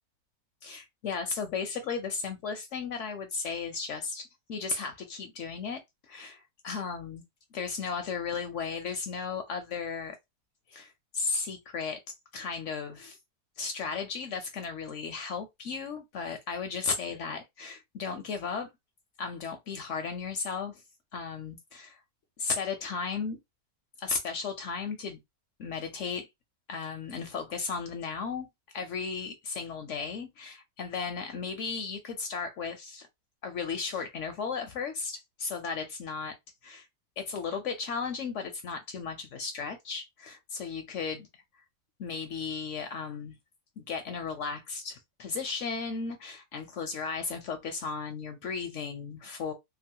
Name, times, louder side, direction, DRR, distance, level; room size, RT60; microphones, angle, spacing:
voice 1, 0.6-7.2 7.5-10.2 10.7-12.0 12.3-13.2 13.6-18.7 19.2-20.8 21.1-22.0 22.4-23.4 24.0-25.2 25.6-26.3 26.7-28.5 28.7-33.1 33.4-36.4 36.6-36.9 37.2-41.4 42.0-43.4 43.8-49.5, left 5 dB, 65° left, 0.8 m, -35 dB
3.0 x 2.3 x 2.7 m
omnidirectional pair, 1.6 m